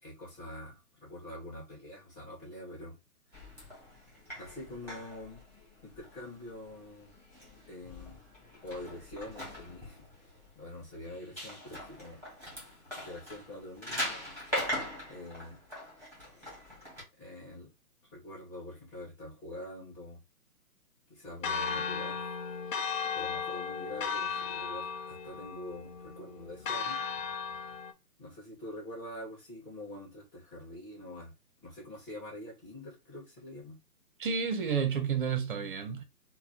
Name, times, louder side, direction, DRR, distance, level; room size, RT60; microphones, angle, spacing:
voice 1, 0.0-3.0 4.4-5.4 5.8-7.1 7.6-8.2 8.6-12.2 13.0-14.2 15.1-15.6 17.2-17.7 18.1-20.2 21.1-22.3 23.1-27.0 28.2-31.3 31.6-33.8, left 1 dB, 40° left, 2.0 m, -45 dB
sound 1, 3.3-17.0, equal, 5° left, 1.3 m, -42 dB
Church bell, 21.4-27.9, left 6 dB, 60° left, 0.7 m, -36 dB
voice 2, 34.2-36.0, right 6 dB, 35° right, 0.6 m, -30 dB
4.0 x 2.1 x 2.7 m
hypercardioid pair, 145°, 46 cm